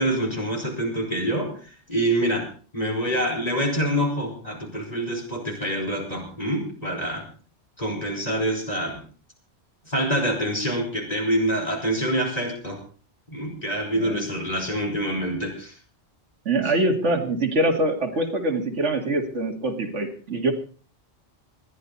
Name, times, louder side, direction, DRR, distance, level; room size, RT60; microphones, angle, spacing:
voice 1, 0.0-1.6 1.9-2.5 2.7-7.3 7.8-9.0 9.9-12.8 13.3-15.7 16.6-16.7, right 1 dB, 35° left, 1 dB, 5.4 m, -26 dB
voice 2, 16.5-20.5, right 2 dB, 85° right, 4 dB, 2.6 m, -24 dB
20.5 x 13.5 x 4.2 m, 0.39 s
omnidirectional pair, 1.2 m